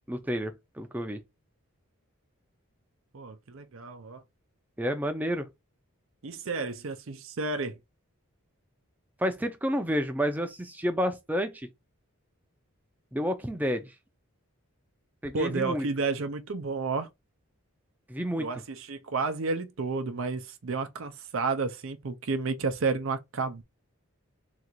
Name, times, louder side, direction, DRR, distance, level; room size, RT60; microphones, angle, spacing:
voice 1, 0.1-1.2 4.8-5.5 9.2-11.7 13.1-13.9 15.2-15.9 18.1-18.5, equal, 5° right, 0.5 m, -30 dB
voice 2, 3.1-4.2 6.2-7.8 15.3-17.1 18.3-23.6, right 4 dB, 65° right, 0.6 m, -31 dB
3.8 x 2.5 x 4.5 m
head